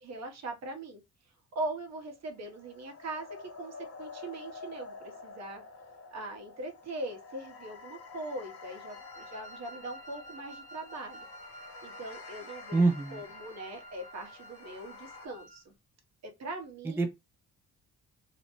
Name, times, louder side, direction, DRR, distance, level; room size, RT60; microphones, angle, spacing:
voice 1, 0.0-1.0 1.5-5.6 6.1-11.3 11.8-12.8 13.1-15.7 16.2-17.0, right 2 dB, 60° right, 0.9 m, -41 dB
sound 1, 1.7-15.3, left 4 dB, 50° left, 0.8 m, -49 dB
Wind instrument woodwind instrument, 8.9-15.6, equal, 25° right, 0.8 m, -50 dB
voice 2, 12.7-13.2 16.9-17.1, right 3 dB, 10° right, 0.4 m, -26 dB
2.6 x 2.1 x 2.9 m
cardioid pair, 90°, 30 cm